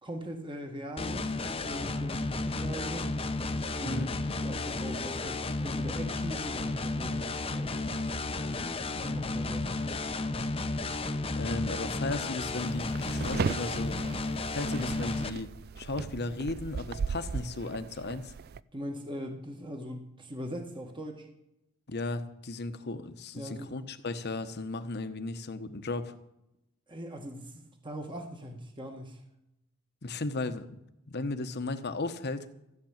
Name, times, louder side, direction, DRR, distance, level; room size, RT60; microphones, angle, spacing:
voice 1, 0.0-3.1 3.8-4.1 4.3-7.8 8.9-10.1 18.7-21.3 23.3-23.8 26.9-29.2, equal, 25° right, 3 dB, 1.6 m, -41 dB
sound 1, 1.0-15.3, left 2 dB, 25° left, 0.8 m, -33 dB
voice 2, 11.3-14.0 14.5-18.3 21.9-26.1 30.0-30.8 31.1-32.5, left 2 dB, 55° left, 9 dB, 1.1 m, -35 dB
sound 2, 12.5-18.6, right 5 dB, 50° right, 0.4 m, -37 dB
15.0 x 7.0 x 8.8 m, 0.85 s
head